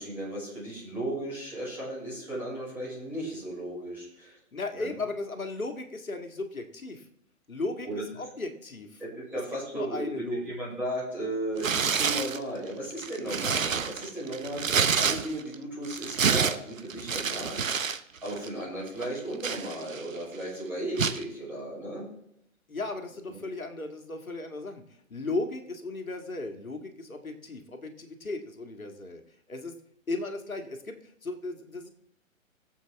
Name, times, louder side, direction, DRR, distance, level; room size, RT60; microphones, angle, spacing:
voice 1, 0.0-4.4 4.7-4.9 7.8-8.0 9.0-17.7 18.2-22.0, right 1 dB, 5° right, -7 dB, 5.9 m, -35 dB
voice 2, 4.5-7.0 7.5-9.0 9.3-9.4 9.7-10.6 22.7-24.8 25.1-29.2 29.5-29.7 30.1-31.9, left 2 dB, 75° left, 4 dB, 2.1 m, -36 dB
Tearing, 11.6-12.4 12.9-15.5 15.8-18.0 18.3-18.5 19.0-20.2 21.0-21.2, right 6 dB, 70° right, 1.0 m, -28 dB
20.0 x 7.5 x 3.5 m, 0.77 s
figure-of-eight pair, 130°, 42 cm